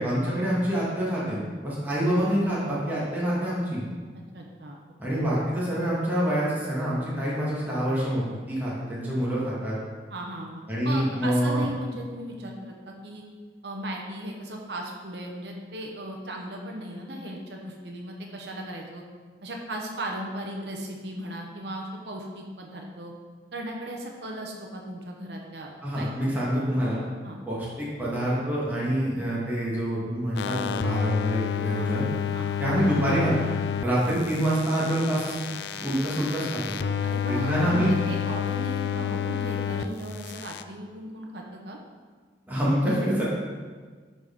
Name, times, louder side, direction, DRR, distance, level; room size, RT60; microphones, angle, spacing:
voice 1, 0.0-3.8 5.0-9.8 10.7-11.7 25.8-27.0 27.5-32.1 32.6-33.3 33.8-35.3 35.7-36.7 37.3-37.9 42.5-43.2, equal, 10° right, -8 dB, 1.6 m, -26 dB
voice 2, 4.3-4.8 5.1-5.2 10.1-13.2 13.6-19.0 19.4-23.1 23.5-26.3 27.2-27.4 31.7-31.9 32.3-32.5 37.0-41.8, right 1 dB, 70° right, 0 dB, 1.1 m, -37 dB
sound 1, 30.4-33.8 34.2-39.9 40.2-40.6, left 9 dB, 65° left, 0.3 m, -30 dB
11.0 x 4.2 x 3.7 m, 1.5 s
head